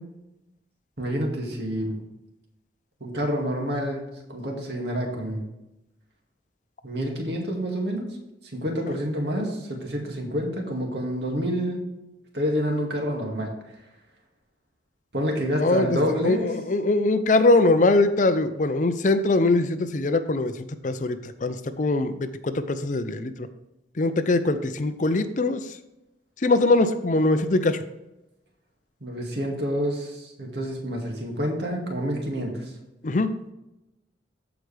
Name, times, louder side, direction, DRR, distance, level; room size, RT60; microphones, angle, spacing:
voice 1, 1.0-2.0 3.0-5.4 6.8-8.2 8.5-11.8 12.3-13.5 15.1-16.5 29.0-32.7, equal, 65° right, 1 dB, 2.2 m, -28 dB
voice 2, 15.6-16.0 16.2-20.5 20.8-23.3 24.0-25.6 26.4-27.8 33.0-33.3, left 2 dB, 45° left, 11 dB, 0.5 m, -22 dB
14.5 x 4.9 x 3.4 m, 0.94 s
head